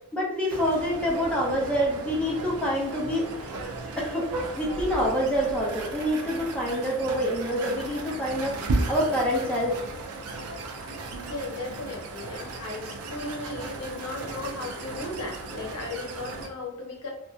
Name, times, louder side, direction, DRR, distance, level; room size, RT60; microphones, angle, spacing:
voice 1, 0.1-3.2 3.9-4.3 4.6-8.6 8.9-9.8, equal, 5° left, -4 dB, 0.5 m, -26 dB
sound 1, 0.5-16.5, right 2 dB, 70° right, 0.4 m, -35 dB
voice 2, 11.3-17.1, left 2 dB, 85° left, -2 dB, 0.8 m, -36 dB
2.7 x 2.1 x 2.3 m, 0.83 s
head